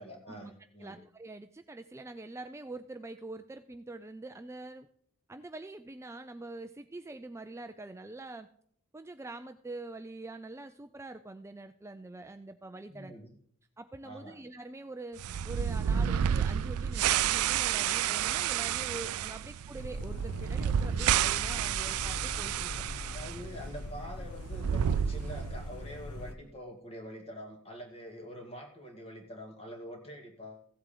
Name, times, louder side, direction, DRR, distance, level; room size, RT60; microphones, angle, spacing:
voice 1, 0.0-1.0 12.9-13.3 14.0-14.4 19.3-19.5 23.1-30.7, equal, 30° left, 3 dB, 2.0 m, -45 dB
voice 2, 0.8-4.9 5.3-8.5 8.9-13.1 13.8-22.7, right 2 dB, 10° right, 8 dB, 0.3 m, -44 dB
sound 1, 15.2-23.4 23.6-23.7 24.4-25.7, right 9 dB, 85° right, 0.4 m, -30 dB
sound 2, 19.8-26.3, left 2 dB, 80° left, 0.9 m, -41 dB
15.5 x 7.9 x 3.8 m, 0.63 s
head